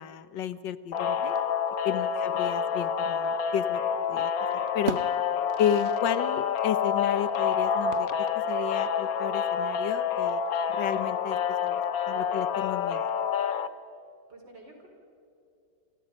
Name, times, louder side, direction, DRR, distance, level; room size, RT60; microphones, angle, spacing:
voice 1, 0.0-1.3 1.8-3.8 4.1-4.3 4.7-5.0 5.6-8.1 8.3-10.4 10.7-11.8 12.1-13.1, left 9 dB, 80° left, 13 dB, 1.6 m, -32 dB
sound 1, 0.9-13.7, left 7 dB, 60° left, 1.2 m, -28 dB
sound 2, 3.6-4.3 4.6-6.3 6.5-6.6 7.9-8.6, right 9 dB, 55° right, 0.7 m, -39 dB
voice 2, 14.3-14.9, right 2 dB, 85° right, 1 dB, 5.5 m, -50 dB
28.5 x 27.0 x 5.4 m, 2.6 s
omnidirectional pair, 1.9 m